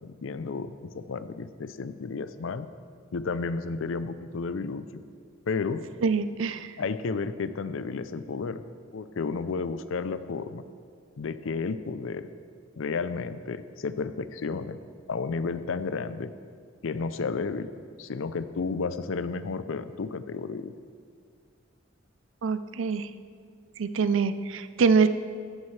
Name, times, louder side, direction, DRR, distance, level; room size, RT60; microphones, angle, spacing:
voice 1, 0.0-2.7 3.1-5.0 5.5-5.8 6.8-8.6 8.9-10.6 11.2-12.3 12.8-14.8 15.1-16.3 16.8-17.7 18.0-20.7, left 4 dB, 90° left, 12 dB, 0.5 m, -32 dB
voice 2, 6.0-6.7 22.4-23.1 23.8-25.1, right 5 dB, 75° right, 13 dB, 0.5 m, -24 dB
14.5 x 9.7 x 3.3 m, 2.1 s
head